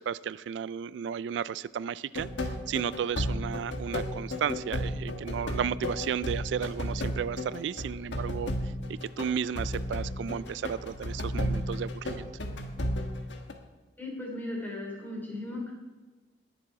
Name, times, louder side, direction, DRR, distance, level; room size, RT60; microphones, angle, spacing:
voice 1, 0.0-8.7 9.2-12.3, right 8 dB, 80° right, 19 dB, 0.3 m, -33 dB
sound 1, 2.1-13.5, equal, 80° left, 1.4 m, -34 dB
voice 2, 14.0-15.7, left 1 dB, 10° left, -2 dB, 3.3 m, -36 dB
20.0 x 7.0 x 4.7 m, 1.3 s
head